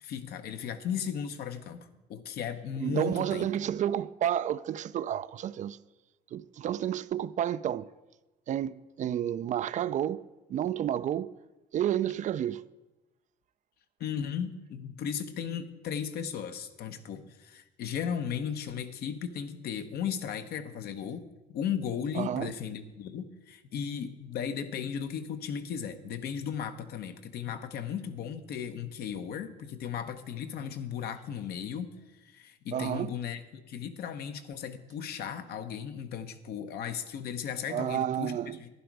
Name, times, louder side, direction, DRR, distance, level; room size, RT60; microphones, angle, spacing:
voice 1, 0.0-3.5 14.0-21.3 21.5-38.7, left 8 dB, 70° left, 0.9 m, -36 dB
voice 2, 2.8-5.8 6.3-7.9 8.5-11.3 11.7-12.6 22.2-22.5 32.7-33.1 37.7-38.6, right 10 dB, 45° right, 0.4 m, -31 dB
11.5 x 10.5 x 4.7 m
cardioid pair, 110°, 17 cm